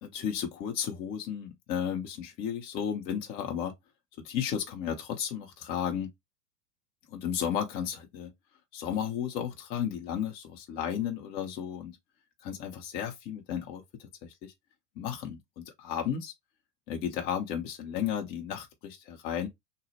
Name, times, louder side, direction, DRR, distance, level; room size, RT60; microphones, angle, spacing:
voice 1, 0.0-3.7 4.2-6.1 7.1-8.3 8.7-12.0 12.4-14.5 15.0-16.3 16.9-19.5, left 9 dB, 20° left, 0.4 m, -34 dB
3.0 x 2.0 x 2.8 m
hypercardioid pair, 95°, 48 cm